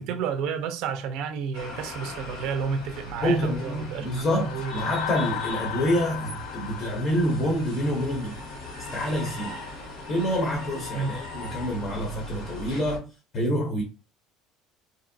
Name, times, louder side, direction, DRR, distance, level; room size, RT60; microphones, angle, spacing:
voice 1, 0.0-4.9 10.9-11.2, right 6 dB, 60° right, 0.4 m, -31 dB
sound 1, 1.5-13.0, left 2 dB, 85° left, 1.4 m, -39 dB
voice 2, 3.2-8.4 8.9-9.6 10.1-13.8, equal, 25° left, 0.6 m, -27 dB
sound 2, 4.0-8.5, left 8 dB, 70° left, 0.4 m, -36 dB
2.8 x 2.6 x 2.6 m
cardioid pair, 165°, 0 cm